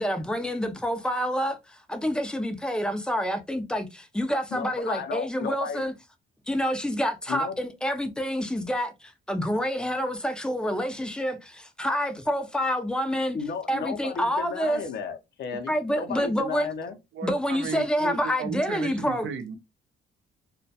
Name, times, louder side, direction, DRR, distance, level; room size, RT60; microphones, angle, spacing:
voice 1, 0.0-5.9 6.5-13.4 13.7-14.8 15.7-16.7 17.2-19.3, equal, 5° left, 0.4 m, -28 dB
voice 2, 4.5-5.8 7.3-7.6 13.3-17.0, left 5 dB, 60° left, 0.5 m, -34 dB
voice 3, 17.1-19.6, right 6 dB, 70° right, 0.5 m, -35 dB
2.1 x 2.1 x 2.7 m
cardioid pair, 90°, 20 cm